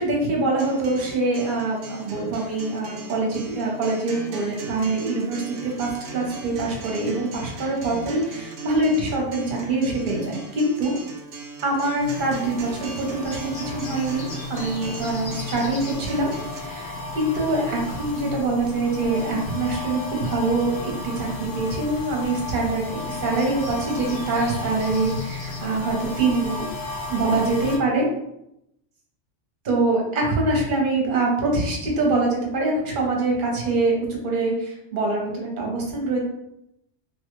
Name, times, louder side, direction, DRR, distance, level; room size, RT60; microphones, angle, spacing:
voice 1, 0.0-10.9 11.6-26.7 27.1-28.1 29.6-36.2, right 2 dB, 50° right, -1 dB, 0.9 m, -24 dB
Acoustic guitar, 0.6-16.6, right 3 dB, 75° right, 0.9 m, -39 dB
sound 1, 12.0-27.8, left 2 dB, 80° left, 0.9 m, -34 dB
Bird, 12.9-26.1, left 2 dB, 50° left, 0.7 m, -41 dB
2.9 x 2.3 x 3.0 m, 0.81 s
omnidirectional pair, 1.3 m